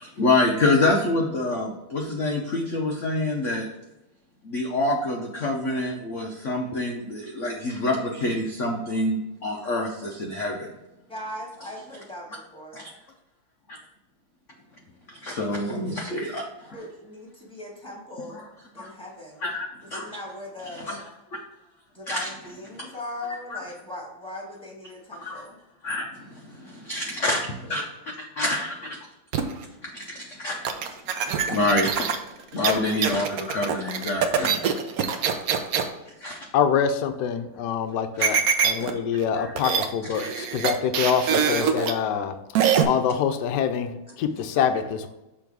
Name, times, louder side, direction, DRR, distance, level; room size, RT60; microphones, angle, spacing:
voice 1, 0.0-3.7 4.4-10.7 12.7-12.9 13.7-13.8 15.2-16.4 16.7-16.8 18.4-18.5 18.8-18.9 19.4-20.2 20.7-21.0 22.1-22.3 23.5-23.6 25.2-25.4 25.8-26.6 26.9-27.4 27.7-27.8 28.4-29.0 29.8-30.6 31.4-32.1 32.5-34.6 36.2-36.4 38.2-38.3 39.3-39.5 40.2-40.3, left 2 dB, 90° left, 1 dB, 0.6 m, -26 dB
voice 2, 11.1-12.9 16.7-18.4 18.7-19.5 19.9-21.0 21.9-25.6, left 1 dB, 5° left, -2 dB, 1.1 m, -39 dB
sound 1, 29.3-29.6 30.6-35.9 38.2-38.9 39.2-39.3 39.6-39.9 40.1-41.9 42.5-42.8, right 7 dB, 90° right, 0.7 m, -24 dB
voice 3, 36.5-42.4 42.8-45.1, left 7 dB, 70° left, 8 dB, 1.0 m, -25 dB
6.2 x 3.3 x 4.6 m, 0.98 s
omnidirectional pair, 2.3 m